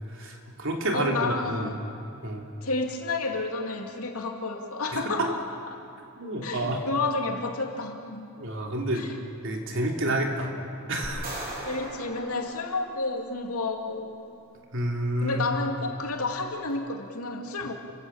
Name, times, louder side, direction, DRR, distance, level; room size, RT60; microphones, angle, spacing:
voice 1, 0.1-1.7 2.2-2.4 4.9-5.3 6.2-6.8 8.4-9.0 9.4-10.5 10.9-11.3 14.7-15.5, right 1 dB, 60° right, 1 dB, 3.1 m, -29 dB
voice 2, 0.9-1.8 2.6-5.4 5.7-5.8 6.4-8.3 8.9-9.2 10.1-10.2 11.7-14.2 15.2-17.7, left 3 dB, 80° left, 2 dB, 2.6 m, -31 dB
sound 1, 11.0-13.4, right 1 dB, 40° right, 4.4 m, -39 dB
30.0 x 16.5 x 7.3 m, 2.7 s
head